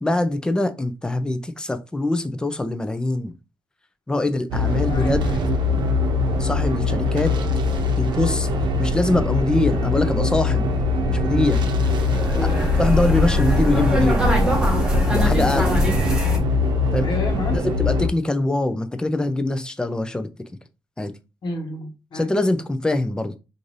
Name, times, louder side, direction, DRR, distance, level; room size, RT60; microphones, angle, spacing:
voice 1, 0.0-3.3 4.1-5.2 6.4-7.3 8.0-8.5 8.8-10.7 11.1-11.6 12.4-12.5 12.8-14.2 15.1-15.7 16.9-17.1 17.5-20.3 21.0-21.1 22.1-23.4, left 2 dB, 10° left, 0.4 m, -23 dB
sound 1, 4.5-18.1, left 3 dB, 70° right, 0.7 m, -22 dB
voice 2, 4.9-5.4 12.3-12.8 15.3-15.6 17.0-17.6 21.4-22.3, left 2 dB, 60° left, 1.0 m, -31 dB
sound 2, 11.4-16.4, equal, 10° right, 1.1 m, -23 dB
3.1 x 2.6 x 3.9 m
wide cardioid pair, 125°, 8 cm